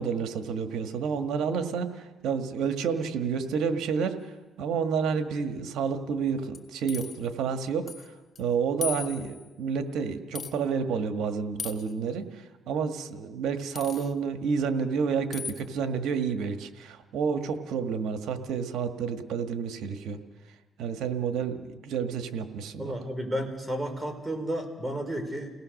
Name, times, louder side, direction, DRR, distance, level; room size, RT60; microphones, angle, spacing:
voice 1, 0.0-7.9 8.4-20.2 20.8-22.9, right 6 dB, 85° right, 7 dB, 1.7 m, -30 dB
sound 1, 6.5-7.3 7.9-8.1 8.4-8.5 8.8-9.5 10.4-10.5 11.6-11.9 13.8-14.1 15.3-15.6, left 6 dB, 45° left, 2.0 m, -37 dB
voice 2, 22.8-25.5, right 1 dB, 15° right, 5 dB, 4.7 m, -32 dB
30.0 x 18.0 x 6.5 m, 1.2 s
cardioid pair, 75°, 0 cm